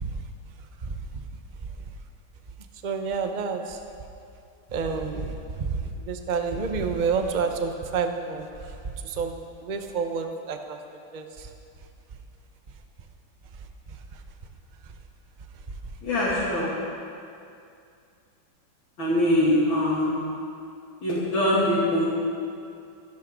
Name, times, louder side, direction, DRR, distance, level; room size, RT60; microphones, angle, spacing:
voice 1, 2.8-3.8 4.7-5.3 5.6-5.7 6.1-8.5 9.0-9.3 9.6-10.8 11.1-11.2, right 5 dB, 35° right, 5 dB, 0.7 m, -28 dB
voice 2, 16.0-16.6 19.0-20.1 21.0-22.1, left 1 dB, 70° left, -8 dB, 3.4 m, -23 dB
25.5 x 12.0 x 3.8 m, 2.5 s
omnidirectional pair, 2.2 m